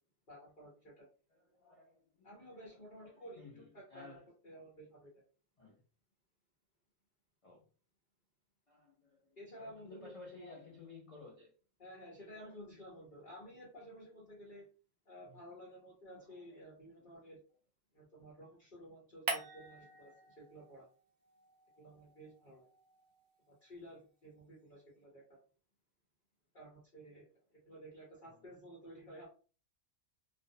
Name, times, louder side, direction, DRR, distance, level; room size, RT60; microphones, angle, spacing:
voice 1, 0.3-1.1 2.2-4.2 4.4-5.1 9.4-10.5 11.8-14.7 15.1-17.4 17.9-20.9 21.8-22.7 23.5-25.2 26.5-29.3, equal, 45° left, 0.9 m, -53 dB
voice 2, 1.3-2.3 2.5-3.6 3.9-4.2 5.6-5.8 7.4-7.6 8.7-9.2 9.6-11.5 12.4-12.5 15.3-15.4, left 3 dB, 60° left, 0.3 m, -55 dB
sound 1, 19.3-21.0 21.3-23.7, right 3 dB, 70° right, 0.9 m, -45 dB
2.5 x 2.0 x 2.6 m
omnidirectional pair, 1.4 m